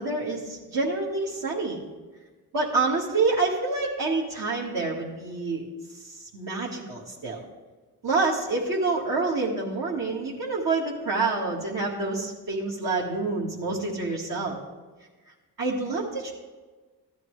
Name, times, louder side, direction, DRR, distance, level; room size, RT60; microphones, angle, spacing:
voice 1, 0.0-1.8 2.5-5.6 5.9-7.4 8.0-14.6 15.6-16.3, right 3 dB, 65° right, -6 dB, 1.9 m, -27 dB
14.5 x 10.5 x 3.3 m, 1.3 s
cardioid pair, 65°, 37 cm